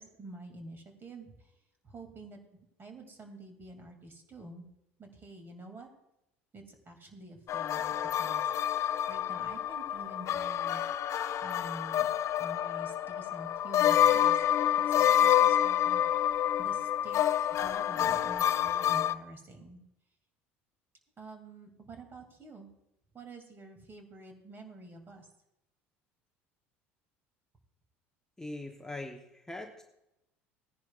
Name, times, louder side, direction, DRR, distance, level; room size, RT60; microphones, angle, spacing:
voice 1, 0.0-1.3 1.8-2.4 2.8-4.6 5.0-5.9 6.5-8.4 9.1-10.8 11.4-12.1 12.4-14.4 14.6-16.3 16.6-17.2 17.5-19.8 21.2-22.7 23.1-25.2, right 2 dB, 30° right, 4 dB, 2.6 m, -48 dB
sound 1, 7.5-19.1, left 10 dB, 45° left, 0.5 m, -28 dB
voice 2, 28.4-29.8, left 2 dB, 10° left, 2 dB, 1.1 m, -41 dB
17.0 x 10.5 x 2.5 m, 0.86 s
hypercardioid pair, 70°, 7 cm